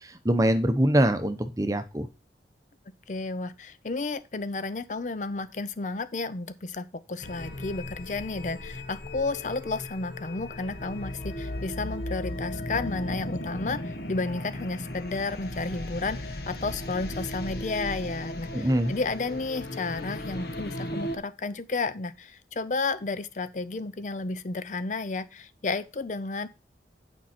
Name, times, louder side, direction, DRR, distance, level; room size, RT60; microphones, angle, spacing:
voice 1, 0.2-2.1 18.5-18.9, right 1 dB, 20° right, 0.8 m, -23 dB
voice 2, 3.1-26.5, left 3 dB, 45° left, 0.5 m, -32 dB
sound 1, 7.2-21.2, left 1 dB, 60° left, 1.4 m, -36 dB
9.0 x 5.4 x 4.3 m
head